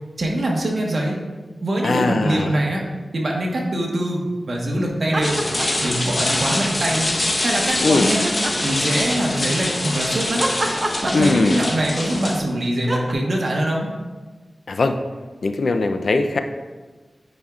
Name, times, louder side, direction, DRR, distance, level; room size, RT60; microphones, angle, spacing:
voice 1, 0.2-1.2 1.6-2.8 3.1-5.4 5.8-7.1 7.4-8.3 8.6-10.4 11.0-13.9, right 1 dB, 65° right, -1 dB, 1.2 m, -23 dB
voice 2, 1.8-2.6 7.8-8.1 11.1-11.6 14.7-15.0 15.4-16.4, left 3 dB, 75° left, 7 dB, 0.4 m, -20 dB
sound 1, 5.0-5.9 6.3-7.2 8.2-9.4 10.4-11.8 12.9-13.1, right 1 dB, 40° right, 0.7 m, -27 dB
sound 2, 5.2-12.4, left 1 dB, 50° left, 1.0 m, -24 dB
8.7 x 5.1 x 2.4 m, 1.3 s
wide cardioid pair, 60°, 0 cm